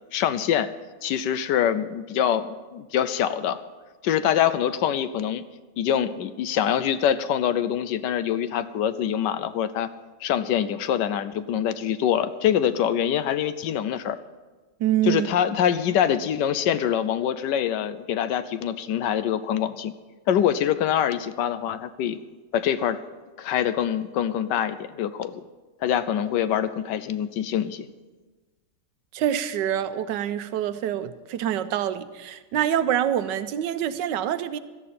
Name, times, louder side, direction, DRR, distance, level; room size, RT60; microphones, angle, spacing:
voice 1, 0.1-0.7 1.0-3.6 4.0-5.4 5.8-9.9 10.2-14.2 15.0-19.9 20.3-22.2 22.5-23.0 23.4-25.4 25.8-27.9, left 9 dB, 75° left, 1.2 m, -24 dB
voice 2, 14.8-15.3 29.1-34.6, right 10 dB, 80° right, 1.3 m, -26 dB
17.0 x 12.5 x 4.2 m
omnidirectional pair, 2.0 m